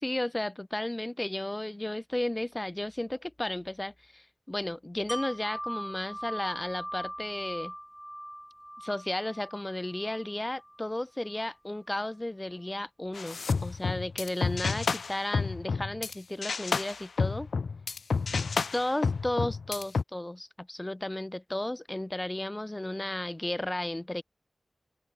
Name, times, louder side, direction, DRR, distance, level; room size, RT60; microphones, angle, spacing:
voice 1, 0.0-7.7 8.8-17.5 18.7-24.2, left 1 dB, 20° left, 1.0 m, -34 dB
Wind chime, 5.1-10.9 11.3-11.4, equal, ahead, 7.2 m, -41 dB
sound 1, 13.1-16.1 16.4-20.0, left 4 dB, 90° left, 1.3 m, -30 dB
open air
wide cardioid pair, 90°, 0 cm